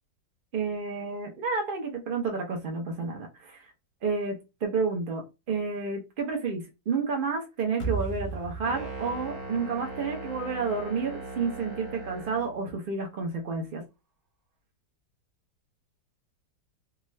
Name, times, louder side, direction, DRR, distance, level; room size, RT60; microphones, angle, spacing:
voice 1, 0.5-3.6 4.0-13.8, right 4 dB, 85° right, 1 dB, 0.4 m, -30 dB
sound 1, 7.8-10.9, right 4 dB, 40° left, 0.4 m, -36 dB
sound 2, 8.6-12.6, right 2 dB, 45° right, 1.2 m, -39 dB
3.6 x 2.4 x 3.1 m, 0.25 s
omnidirectional pair, 2.0 m